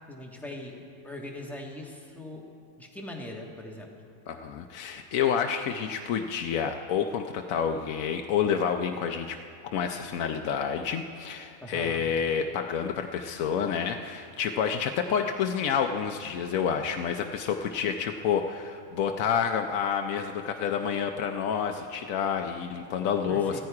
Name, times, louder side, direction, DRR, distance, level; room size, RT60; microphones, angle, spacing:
voice 1, 0.1-0.8 1.0-2.4 2.8-3.9 11.6-12.0 23.3-23.6, left 1 dB, ahead, -1 dB, 1.5 m, -40 dB
voice 2, 4.3-9.4 9.6-23.6, left 7 dB, 90° left, 4 dB, 1.1 m, -29 dB
15.0 x 14.0 x 4.8 m, 2.3 s
omnidirectional pair, 1.4 m